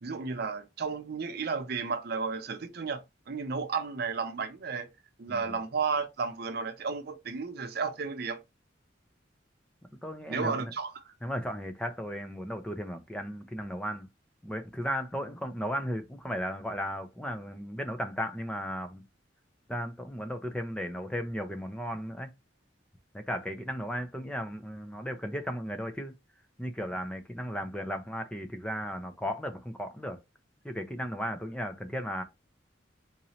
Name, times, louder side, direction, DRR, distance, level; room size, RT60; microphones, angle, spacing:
voice 1, 0.0-4.9 5.2-8.4 10.3-10.9, right 5 dB, 55° right, 0.5 m, -33 dB
voice 2, 10.0-10.7 11.2-14.1 14.4-19.0 19.7-22.3 23.1-26.1 26.6-30.2 30.6-32.2, equal, 5° left, 0.5 m, -35 dB
3.9 x 3.0 x 2.8 m
head